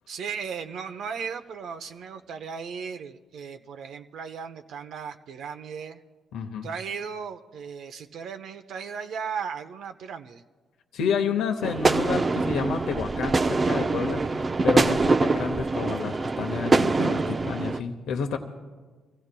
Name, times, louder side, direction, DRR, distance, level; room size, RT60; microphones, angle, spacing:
voice 1, 0.1-6.0 6.6-10.4 14.1-14.5, right 6 dB, 75° right, 7 dB, 0.7 m, -36 dB
voice 2, 6.3-6.7 10.9-18.4, left 6 dB, 85° left, 5 dB, 0.8 m, -30 dB
sound 1, 11.6-17.8, right 3 dB, 30° right, 0.5 m, -24 dB
25.5 x 15.5 x 2.2 m, 1.4 s
cardioid pair, 90°, 0 cm